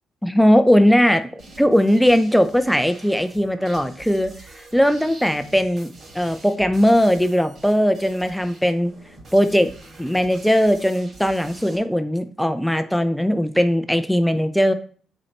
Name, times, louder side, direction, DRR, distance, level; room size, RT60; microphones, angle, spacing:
voice 1, 0.2-4.3 4.7-5.9 6.1-8.9 9.3-9.7 10.0-14.7, equal, ahead, 10 dB, 0.6 m, -19 dB
sound 1, 1.4-11.8, right 2 dB, 45° right, 3.2 m, -45 dB
7.8 x 4.5 x 4.2 m, 0.43 s
cardioid pair, 90°, 0 cm